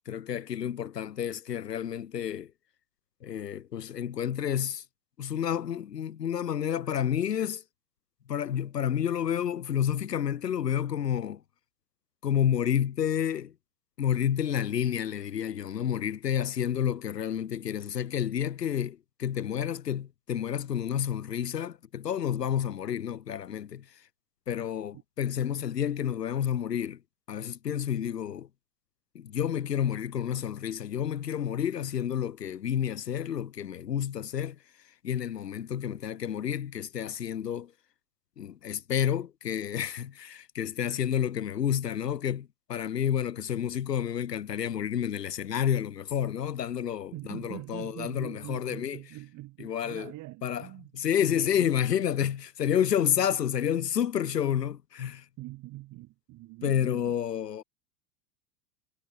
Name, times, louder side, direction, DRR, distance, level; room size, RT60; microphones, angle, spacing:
voice 1, 0.1-2.5 3.2-4.8 5.2-7.6 8.3-11.4 12.2-13.5 14.0-23.9 24.5-27.0 27.3-28.5 29.2-34.6 35.0-37.7 38.4-49.0 49.6-50.1 50.4-50.7 50.9-55.3 56.6-57.6, left 9 dB, 75° left, 1.6 m, -30 dB
voice 2, 47.1-50.9 51.2-51.7 55.4-57.2, right 18 dB, 35° right, 2.9 m, -44 dB
figure-of-eight pair, 90°, 49 cm